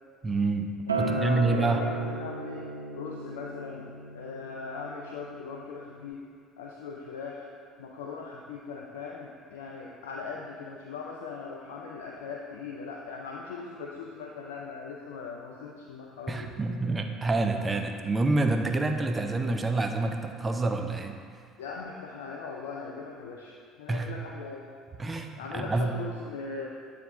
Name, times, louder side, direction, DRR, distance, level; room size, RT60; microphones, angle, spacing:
voice 1, 0.2-0.7 1.0-1.8 16.3-21.2 23.9-24.1 25.0-25.9, right 3 dB, 25° right, 5 dB, 0.5 m, -27 dB
voice 2, 0.9-3.9 4.1-6.3 6.6-7.5 7.8-16.5 21.6-24.7 25.4-26.7, left 4 dB, 75° left, -1 dB, 0.4 m, -40 dB
Acoustic guitar, 0.9-6.1, right 2 dB, 90° right, 0.5 m, -35 dB
8.7 x 3.4 x 3.6 m, 2.1 s
figure-of-eight pair, 60°, 0 cm